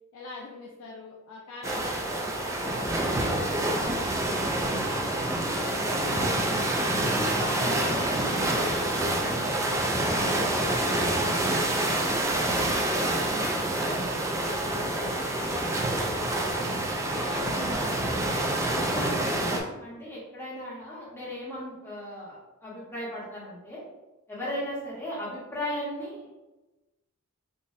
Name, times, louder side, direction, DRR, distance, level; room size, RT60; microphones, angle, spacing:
voice 1, 0.1-4.9 5.4-6.9 7.5-8.9 9.2-11.5 11.9-16.8 17.2-18.3, left 3 dB, 85° left, -3 dB, 0.5 m, -43 dB
sound 1, 1.6-19.6, right 1 dB, 15° right, 0.3 m, -27 dB
voice 2, 7.1-8.3 17.5-17.8 18.7-23.8 24.3-26.3, equal, 10° left, -8 dB, 1.2 m, -37 dB
3.8 x 2.5 x 2.6 m, 1.1 s
head